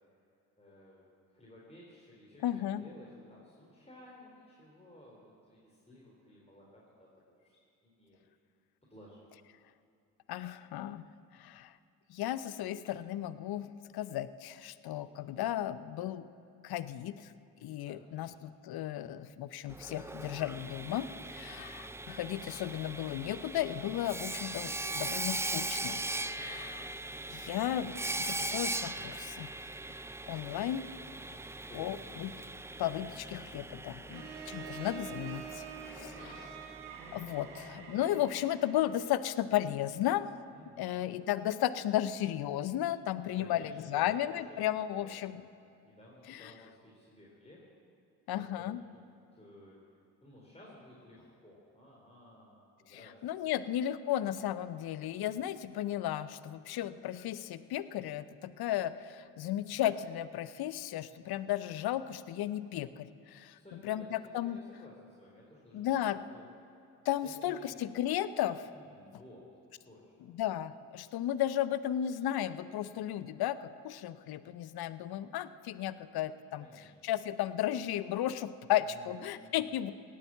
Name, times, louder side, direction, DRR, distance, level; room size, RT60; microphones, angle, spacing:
voice 1, 0.6-7.1 7.4-7.6 7.8-8.2 8.8-9.2 17.8-18.4 21.3-21.7 31.1-32.0 34.0-34.4 36.0-36.3 40.5-41.0 43.3-44.6 45.0-45.2 45.8-47.6 48.3-49.0 49.3-49.7 50.2-53.7 55.2-55.5 63.6-66.0 66.3-66.4 67.2-67.9 68.7-69.4 69.8-70.1 76.6-76.9 78.8-79.8, left 1 dB, 15° left, -5 dB, 3.7 m, -55 dB
voice 2, 2.4-2.8 10.3-11.0 11.4-11.7 12.1-16.3 16.6-17.3 17.6-26.0 26.3-26.9 27.3-29.5 30.3-30.9 31.7-32.3 32.8-34.2 34.5-35.6 35.9-36.3 37.1-40.3 40.8-45.4 46.3-46.5 48.3-48.8 52.9-63.6 63.8-64.6 65.7-66.2 67.1-68.7 70.3-76.7 77.0-79.9, left 12 dB, 50° left, 15 dB, 0.7 m, -34 dB
Sawing, 19.7-37.5, right 2 dB, 5° right, 0.4 m, -40 dB
Bowed string instrument, 34.1-39.0, right 7 dB, 80° right, 1.4 m, -46 dB
17.5 x 8.7 x 7.5 m, 2.6 s
hypercardioid pair, 40°, 47 cm